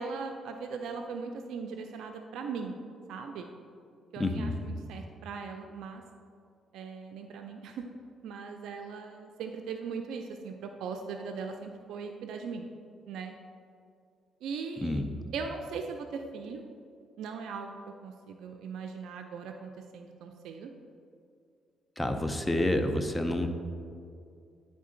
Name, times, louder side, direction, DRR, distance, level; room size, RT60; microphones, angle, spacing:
voice 1, 0.0-2.8 3.1-3.5 4.1-6.0 6.7-7.8 8.2-12.7 13.1-13.3 14.4-15.0 15.3-16.6 17.2-17.8 18.0-20.7, right 5 dB, 85° right, 5 dB, 0.4 m, -39 dB
voice 2, 4.2-4.5 14.8-15.1 22.0-23.5, left 1 dB, 15° left, 6 dB, 0.6 m, -28 dB
9.4 x 3.7 x 3.7 m, 2.4 s
cardioid pair, 90°, 0 cm